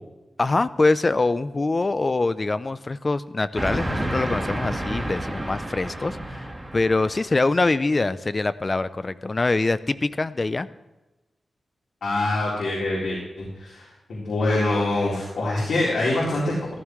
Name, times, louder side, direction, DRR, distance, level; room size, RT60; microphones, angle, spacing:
voice 1, 0.4-10.7, left 3 dB, 30° left, 14 dB, 0.6 m, -24 dB
Train, 3.6-7.5, right 1 dB, 15° right, 1.8 m, -30 dB
voice 2, 12.0-16.7, left 2 dB, 85° left, -6 dB, 4.1 m, -25 dB
14.5 x 14.5 x 3.2 m, 1.1 s
wide cardioid pair, 125°, 0 cm